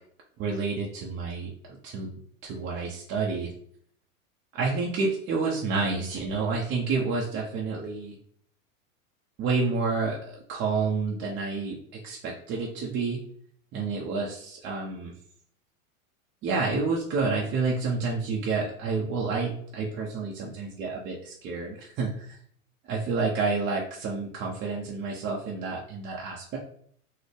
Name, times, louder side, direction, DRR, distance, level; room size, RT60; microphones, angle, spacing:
voice 1, 0.4-3.5 4.5-8.2 9.4-11.8 12.0-13.2 13.7-15.1 16.4-22.4 22.9-26.6, right 4 dB, 30° right, -2 dB, 0.5 m, -29 dB
4.0 x 2.0 x 3.2 m, 0.62 s
hypercardioid pair, 105°, 41 cm